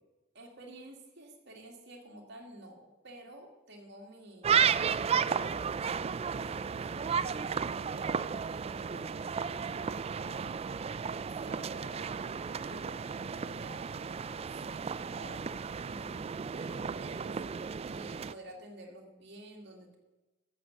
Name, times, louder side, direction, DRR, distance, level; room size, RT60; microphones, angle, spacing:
voice 1, 0.3-10.6 11.2-12.1 12.6-17.3 17.9-20.0, right 1 dB, 60° right, 0 dB, 2.7 m, -51 dB
sound 1, 4.4-18.3, right 6 dB, 30° right, 0.3 m, -33 dB
14.0 x 6.5 x 7.4 m, 1.1 s
head